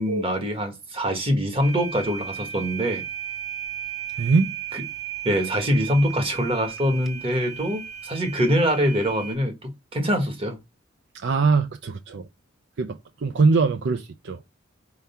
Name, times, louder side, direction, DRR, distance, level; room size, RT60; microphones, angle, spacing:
voice 1, 0.0-3.0 4.7-4.8 5.2-10.6, equal, 25° right, 1.4 m, -24 dB
sound 1, 1.6-9.3, right 9 dB, ahead, 1.0 m, -35 dB
voice 2, 4.2-4.5 11.1-12.3 12.8-14.4, right 4 dB, 60° right, 0.5 m, -22 dB
4.6 x 3.9 x 5.5 m
head